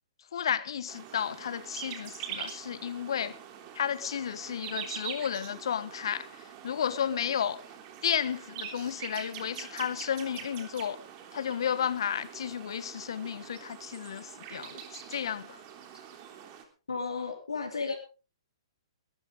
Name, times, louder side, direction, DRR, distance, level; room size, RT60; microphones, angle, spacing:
voice 1, 0.3-3.4 3.7-7.6 8.0-11.0 11.3-15.6, left 8 dB, 65° left, 1.2 m, -33 dB
sound 1, 0.9-16.6, right 8 dB, 35° right, 3.3 m, -44 dB
voice 2, 16.9-17.9, left 4 dB, 80° left, 3.3 m, -33 dB
19.5 x 13.5 x 3.7 m
figure-of-eight pair, 120°, 3 cm